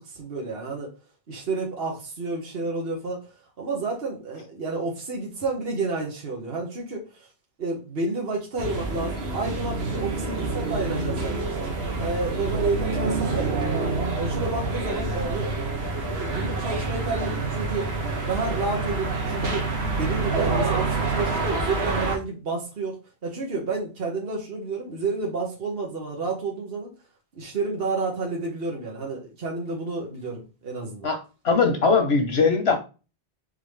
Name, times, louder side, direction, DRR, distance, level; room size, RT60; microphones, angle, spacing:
voice 1, 0.1-0.9 1.3-3.2 3.6-7.3 7.6-11.5 11.9-13.7 14.1-15.5 16.1-17.9 18.3-19.7 20.0-26.9 27.3-31.1, right 3 dB, 70° right, 1.4 m, -30 dB
sound 1, 8.6-22.2, right 3 dB, 85° right, 1.3 m, -27 dB
voice 2, 31.0-32.8, left 4 dB, 80° left, 1.4 m, -21 dB
4.0 x 3.7 x 3.2 m
omnidirectional pair, 1.0 m